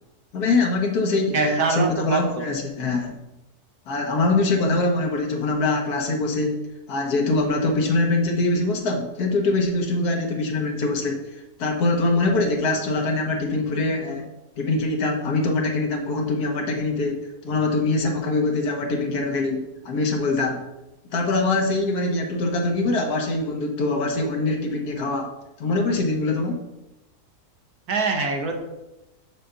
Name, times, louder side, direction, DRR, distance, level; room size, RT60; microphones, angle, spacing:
voice 1, 0.3-3.2 3.9-11.2 11.6-14.3 14.6-17.2 17.4-20.6 21.1-25.3 25.6-26.6, left 2 dB, 85° left, 1 dB, 1.7 m, -23 dB
voice 2, 1.3-2.4 27.9-28.6, right 4 dB, 75° right, 3 dB, 1.7 m, -24 dB
7.5 x 3.9 x 6.7 m, 0.96 s
omnidirectional pair, 1.6 m